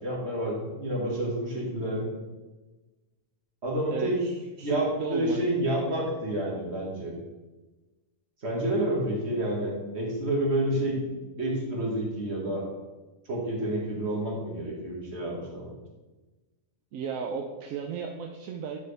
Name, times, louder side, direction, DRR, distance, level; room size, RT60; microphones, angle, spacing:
voice 1, 0.0-2.1 3.6-4.2 4.6-7.1 8.4-11.0 11.4-12.6 13.3-15.7, right 1 dB, 55° right, -3 dB, 2.1 m, -29 dB
voice 2, 3.9-5.4 16.9-18.8, right 6 dB, 80° right, 2 dB, 1.0 m, -35 dB
10.5 x 4.4 x 3.4 m, 1.2 s
omnidirectional pair, 1.4 m